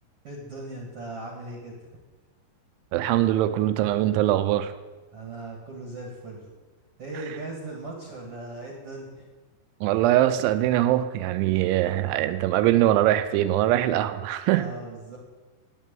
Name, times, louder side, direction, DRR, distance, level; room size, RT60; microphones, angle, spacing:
voice 1, 0.2-1.7 5.1-6.5 7.0-9.2 14.4-15.2, right 2 dB, 60° right, 0 dB, 1.5 m, -38 dB
voice 2, 2.9-4.7 9.8-14.7, right 13 dB, 85° right, 11 dB, 2.7 m, -22 dB
9.4 x 9.3 x 9.1 m, 1.3 s
omnidirectional pair, 5.9 m